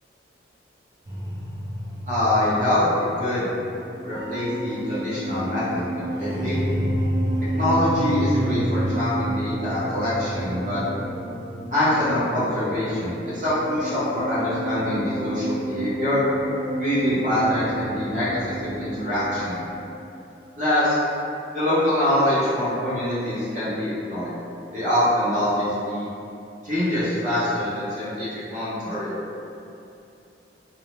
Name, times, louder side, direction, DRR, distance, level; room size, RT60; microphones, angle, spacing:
sound 1, 1.1-19.9, right 1 dB, 20° right, 0.5 m, -30 dB
voice 1, 2.1-3.5 4.0-6.6 7.5-10.8 11.7-16.2 16.8-19.6 20.6-21.0 21.5-24.3 24.7-26.1 26.6-29.1, left 1 dB, 45° right, -11 dB, 0.9 m, -24 dB
2.5 x 2.0 x 3.0 m, 2.7 s
head